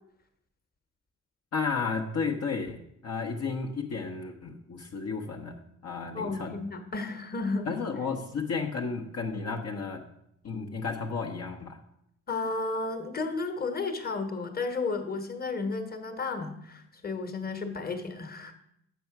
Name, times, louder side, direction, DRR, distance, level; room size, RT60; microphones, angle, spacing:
voice 1, 1.5-6.6 7.7-10.0 10.4-11.8, left 5 dB, 55° left, 1 dB, 0.9 m, -33 dB
voice 2, 6.1-7.7 12.3-18.5, left 3 dB, 30° left, 7 dB, 1.2 m, -33 dB
7.5 x 5.7 x 5.9 m, 0.77 s
cardioid pair, 90°, 30 cm